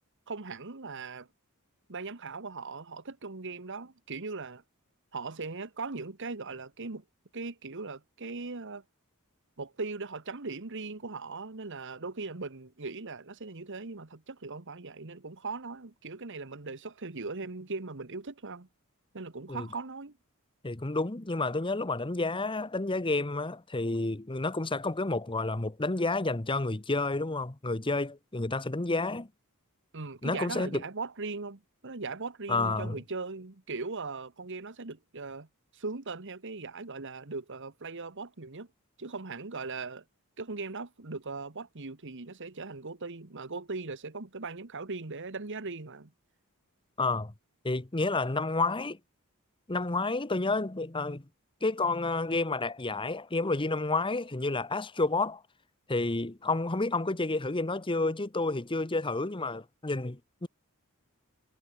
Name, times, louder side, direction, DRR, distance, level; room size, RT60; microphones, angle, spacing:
voice 1, 0.3-1.3 1.9-4.6 5.1-7.0 7.3-8.8 9.6-18.7 19.1-20.1 29.9-35.5 35.7-38.7 39.0-40.0 40.4-46.1, right 3 dB, 60° right, 1.5 m, -39 dB
voice 2, 20.6-29.3 30.2-30.8 32.5-33.0 47.0-47.3 47.6-49.0 49.7-51.2 51.6-55.4 55.9-60.5, left 3 dB, 25° left, 1.1 m, -30 dB
head